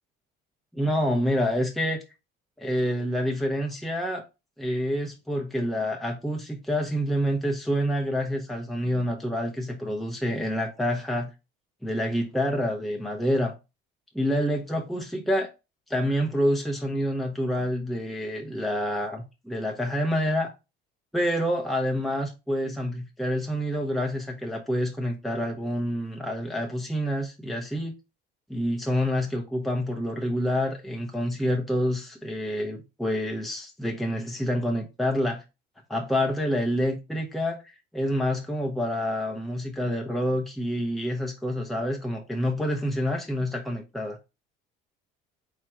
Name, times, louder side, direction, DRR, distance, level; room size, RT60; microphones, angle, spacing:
voice 1, 0.7-2.0 2.6-4.2 4.6-11.3 11.8-13.5 14.1-15.5 15.9-20.5 21.1-27.9 28.5-35.4 35.9-37.6 37.9-44.2, equal, ahead, 0.7 m, -27 dB
4.5 x 2.5 x 4.4 m
cardioid pair, 120°, 21 cm